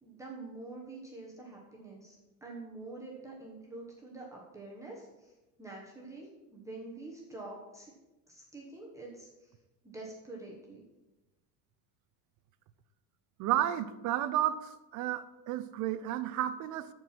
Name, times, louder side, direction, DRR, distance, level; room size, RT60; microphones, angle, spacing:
voice 1, 0.0-2.1 2.4-5.3 5.6-7.9 8.3-9.5 9.8-10.8, right 2 dB, 5° right, -3 dB, 1.2 m, -46 dB
voice 2, 13.4-16.9, right 12 dB, 45° right, 12 dB, 0.6 m, -32 dB
13.0 x 4.7 x 5.9 m, 1.0 s
cardioid pair, 175°, 40 cm